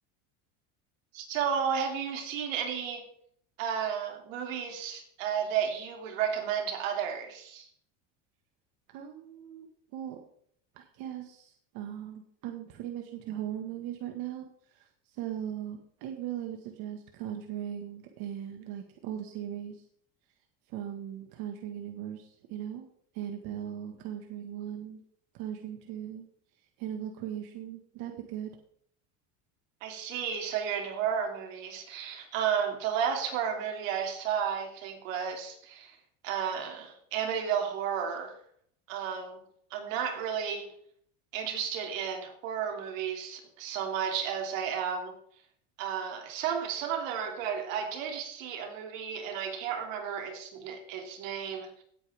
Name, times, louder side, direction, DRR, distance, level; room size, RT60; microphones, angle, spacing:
voice 1, 1.1-3.1 3.6-7.7 29.8-36.0 36.2-38.4 38.9-39.4 39.7-40.7 41.3-45.2 45.8-51.8, right 8 dB, 85° right, 2.7 m, -33 dB
voice 2, 8.9-9.7 9.9-10.2 10.8-19.8 20.7-22.9 23.1-25.0 25.3-26.3 26.8-28.5, right 10 dB, 65° right, 1.7 m, -39 dB
17.5 x 8.7 x 3.5 m
supercardioid pair, 115°, 38 cm